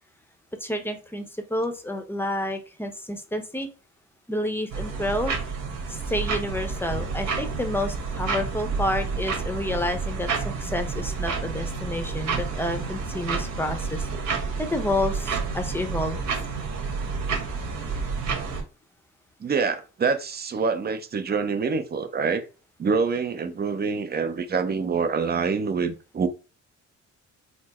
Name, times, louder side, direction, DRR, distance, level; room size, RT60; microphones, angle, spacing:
voice 1, 0.6-3.7 4.3-5.3 5.9-14.1 14.3-16.2, left 1 dB, 5° left, 0.8 m, -29 dB
sound 1, 4.7-18.6, right 5 dB, 65° right, 1.6 m, -29 dB
voice 2, 19.4-22.4 22.8-26.3, right 5 dB, 30° right, 0.7 m, -26 dB
4.3 x 2.0 x 4.2 m
cardioid pair, 90°, 30 cm